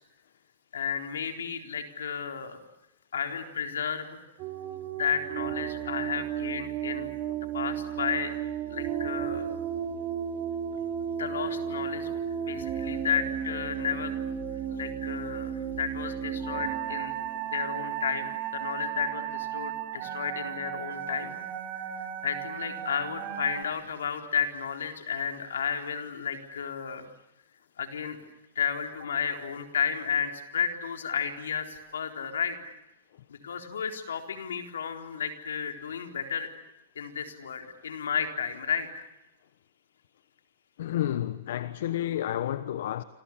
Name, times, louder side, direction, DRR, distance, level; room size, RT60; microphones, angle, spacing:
voice 1, 0.7-2.6 3.1-4.2 4.9-7.1 7.5-8.3 8.7-9.5 11.2-12.1 12.4-14.2 14.7-17.1 17.4-21.3 21.7-27.1 27.8-28.2 28.6-32.6 33.3-36.5 37.0-39.0, left 7 dB, 90° left, 3.9 m, -32 dB
sound 1, 4.4-23.6, right 9 dB, 45° right, 2.9 m, -34 dB
voice 2, 40.8-43.0, left 12 dB, 70° left, 1.1 m, -30 dB
29.0 x 26.5 x 7.4 m
hypercardioid pair, 130°, 0 cm